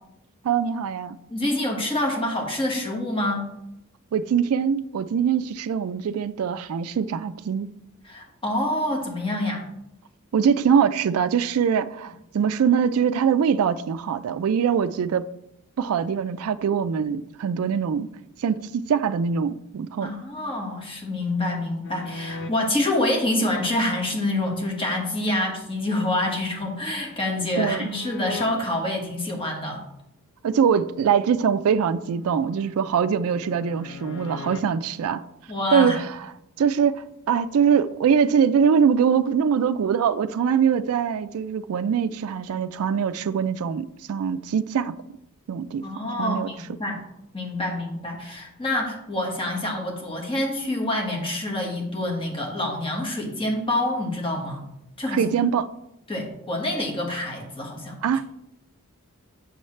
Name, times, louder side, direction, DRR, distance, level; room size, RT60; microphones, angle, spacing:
voice 1, 0.4-1.2 4.1-7.7 10.3-15.3 15.8-18.1 18.4-20.1 27.6-27.9 30.4-35.2 35.7-36.3 36.6-44.9 45.5-45.9 46.2-46.5 55.1-55.7 58.0-58.3, right 7 dB, 75° right, 0.3 m, -23 dB
voice 2, 1.3-3.4 8.0-9.7 20.0-29.8 35.5-36.0 45.8-47.0 47.3-54.6 55.0-55.3 56.1-58.0, left 1 dB, 25° left, 1.5 m, -27 dB
sound 1, 21.8-22.5 25.9-28.5 31.6-34.6, left 3 dB, 60° left, 0.6 m, -41 dB
7.8 x 6.3 x 3.2 m
head